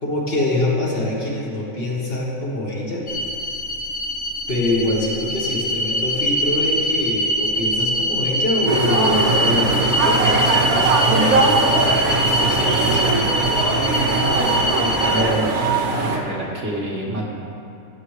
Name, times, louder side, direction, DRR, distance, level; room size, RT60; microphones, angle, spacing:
voice 1, 0.0-3.1 4.5-10.9 11.2-13.0, left 1 dB, 45° left, -3 dB, 1.4 m, -25 dB
sound 1, 3.1-15.2, equal, 65° left, 1.4 m, -23 dB
sound 2, 8.7-16.2, right 3 dB, 80° right, 1.4 m, -20 dB
sound 3, 9.1-15.3, right 1 dB, 25° right, 0.6 m, -31 dB
voice 2, 14.3-17.3, right 1 dB, 55° right, -3 dB, 1.8 m, -28 dB
15.5 x 7.6 x 3.2 m, 2.7 s
omnidirectional pair, 1.5 m